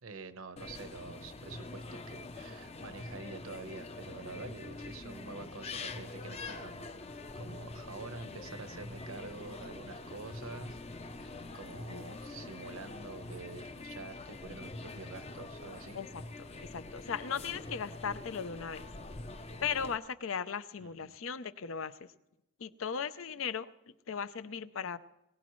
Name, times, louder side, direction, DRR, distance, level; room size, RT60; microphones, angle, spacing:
voice 1, 0.0-6.9 7.3-10.8 11.2-16.0 20.8-21.1, right 3 dB, 80° right, 10 dB, 1.0 m, -47 dB
sound 1, 0.6-19.9, left 2 dB, 30° left, 0.6 m, -45 dB
voice 2, 11.9-12.2 15.9-16.1 16.4-18.9 19.6-22.0 22.6-23.7 24.1-25.0, left 7 dB, 75° left, 14 dB, 0.6 m, -37 dB
22.5 x 17.0 x 3.1 m, 0.91 s
head